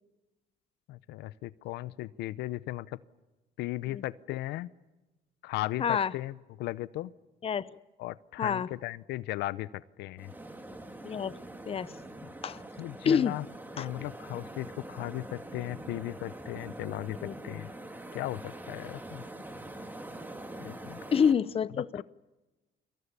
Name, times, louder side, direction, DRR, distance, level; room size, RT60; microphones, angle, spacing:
voice 1, 0.9-3.0 3.6-4.7 5.4-7.1 8.0-10.3 12.8-13.4 13.8-17.7 18.1-19.2 20.6-21.0 21.8-22.0, left 17 dB, 85° left, 0.8 m, -37 dB
voice 2, 5.8-6.1 7.4-7.7 8.4-8.7 11.0-11.3 11.7-11.9 12.4-12.6 13.0-13.3 13.8-13.9 17.2-17.3 21.1-22.0, left 7 dB, 35° left, 0.8 m, -27 dB
sound 1, 10.2-21.3, right 1 dB, 10° right, 3.3 m, -44 dB
29.5 x 23.5 x 6.8 m
cardioid pair, 110°, 17 cm